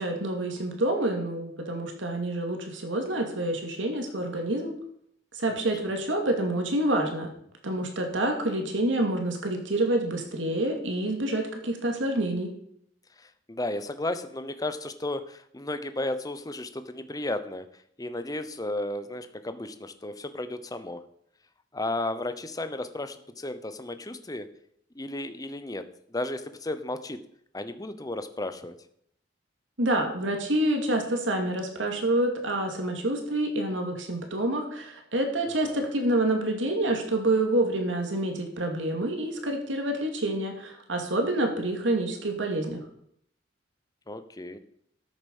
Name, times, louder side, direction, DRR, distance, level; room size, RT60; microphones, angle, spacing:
voice 1, 0.0-4.7 5.3-7.3 7.6-12.5 29.8-42.8, right 1 dB, 85° right, 3 dB, 2.4 m, -27 dB
voice 2, 13.2-17.7 18.0-21.0 21.7-24.5 25.0-27.2 27.5-28.8 35.6-35.9 44.1-44.6, left 2 dB, 20° left, 10 dB, 0.8 m, -34 dB
13.0 x 6.8 x 5.4 m, 0.69 s
head